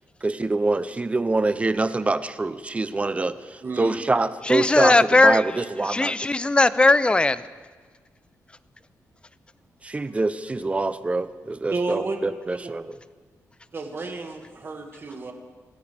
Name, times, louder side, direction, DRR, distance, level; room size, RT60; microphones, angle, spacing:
voice 1, 0.2-6.2 9.8-13.0, right 3 dB, 20° right, 13 dB, 0.7 m, -25 dB
voice 2, 3.6-4.0 11.7-12.2 13.7-15.3, right 3 dB, 40° right, 3 dB, 2.1 m, -31 dB
voice 3, 4.5-5.4 5.9-7.4, left 2 dB, 15° left, 15 dB, 0.5 m, -18 dB
26.0 x 15.5 x 3.5 m, 1.5 s
wide cardioid pair, 115°, 6 cm